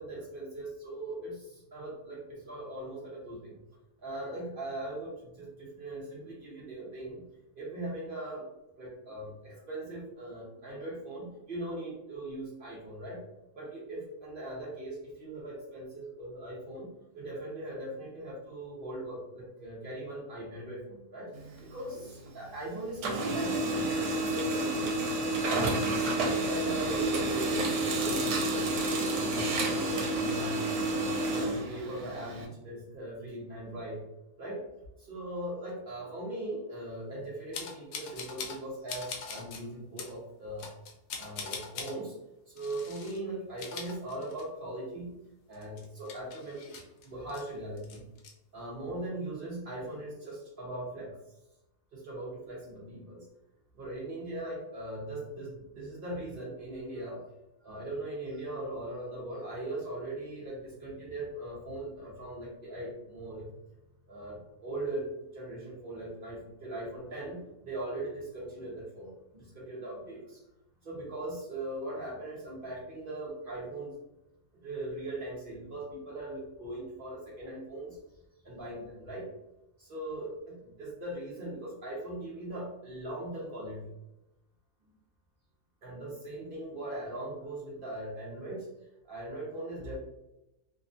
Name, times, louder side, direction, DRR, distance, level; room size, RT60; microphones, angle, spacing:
voice 1, 0.0-3.6 4.0-7.2 7.5-8.5 8.8-13.3 13.5-16.9 17.1-21.3 21.6-25.0 26.5-28.5 29.0-34.0 34.4-34.6 35.0-40.7 41.2-42.2 42.5-45.2 45.5-46.7 47.0-48.0 48.5-51.2 51.9-53.3 53.7-57.2 57.6-63.5 64.1-70.4 70.8-74.0 74.6-78.0 78.4-79.3 79.8-83.9 85.8-88.7 89.0-89.9, right 1 dB, 55° right, -4 dB, 0.6 m, -40 dB
Printer, 21.3-22.6 22.9-32.5, right 2 dB, 80° right, 1.1 m, -30 dB
sound 1, 37.5-38.6 38.9-39.6 40.0-40.1 40.6-41.9 42.6-43.2 43.5-44.7 45.0-45.1 45.5-47.4 47.8-48.3, left 5 dB, 75° left, 1.0 m, -42 dB
2.7 x 2.3 x 2.5 m, 0.92 s
omnidirectional pair, 1.6 m